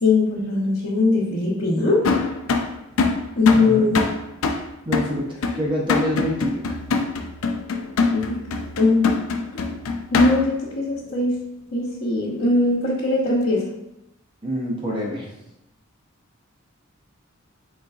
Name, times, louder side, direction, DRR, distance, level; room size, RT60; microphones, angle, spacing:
voice 1, 0.0-2.1 3.4-4.0 8.1-8.4 8.8-9.2 10.1-11.4 11.7-13.6, left 2 dB, 60° left, -8 dB, 1.0 m, -20 dB
sound 1, 2.0-10.6, left 4 dB, 75° left, 0.4 m, -24 dB
voice 2, 3.5-3.9 4.9-5.3 5.5-6.7 14.4-15.3, equal, 25° right, -2 dB, 0.7 m, -26 dB
4.0 x 3.7 x 2.4 m, 0.86 s
head